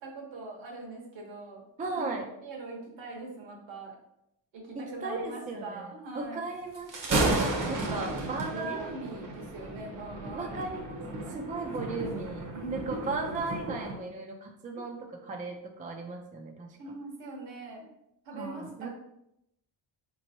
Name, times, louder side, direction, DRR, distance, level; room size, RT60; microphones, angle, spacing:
voice 1, 0.0-1.6 1.9-2.1 2.4-4.0 4.5-6.5 7.6-8.2 8.5-10.6 12.5-13.1 14.7-14.8 16.8-17.9 18.2-18.9, right 2 dB, 75° right, -1 dB, 1.3 m, -42 dB
voice 2, 1.8-2.3 4.8-8.9 10.3-11.0 11.3-16.8 18.3-18.9, right 3 dB, 20° right, 2 dB, 0.4 m, -36 dB
Thunder, 6.7-14.0, right 2 dB, 45° right, 0.8 m, -33 dB
4.3 x 3.1 x 2.7 m, 0.80 s
cardioid pair, 120°, 45 cm